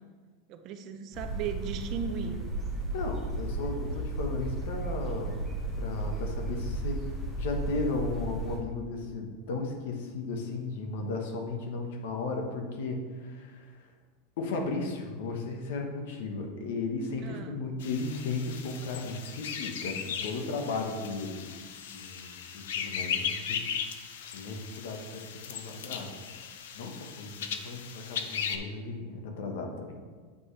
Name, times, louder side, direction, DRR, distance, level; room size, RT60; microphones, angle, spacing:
voice 1, 0.5-2.5 17.2-17.6, right 6 dB, 35° right, 7 dB, 0.5 m, -37 dB
sound 1, 1.1-8.6, right 2 dB, 10° left, 1.4 m, -34 dB
voice 2, 2.9-5.5 5.8-7.1 7.4-13.9 14.4-21.4 21.9-23.6 24.2-26.1 26.7-30.0, left 3 dB, 65° left, 3 dB, 1.2 m, -35 dB
sound 2, 17.8-28.6, left 7 dB, 85° left, 0.6 m, -37 dB
8.1 x 5.5 x 3.3 m, 1.5 s
supercardioid pair, 165°, 0 cm